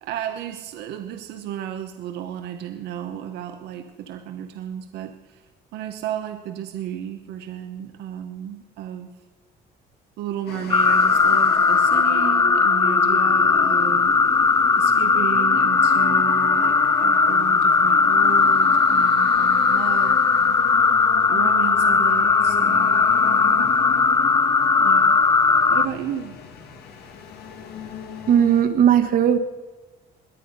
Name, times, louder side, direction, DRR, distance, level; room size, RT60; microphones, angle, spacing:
voice 1, 0.0-5.4 5.7-9.1 10.2-14.1 14.7-20.6 21.3-23.8 24.8-25.2 25.7-26.4, right 10 dB, 80° right, 7 dB, 1.0 m, -33 dB
sound 1, 10.5-28.6, left 6 dB, 75° left, 1.9 m, -36 dB
sound 2, 10.7-25.9, left 5 dB, 20° left, 0.4 m, -18 dB
voice 2, 28.3-29.4, right 9 dB, 60° right, 10 dB, 1.4 m, -17 dB
21.5 x 8.5 x 5.5 m, 1.2 s
cardioid pair, 110°, 17 cm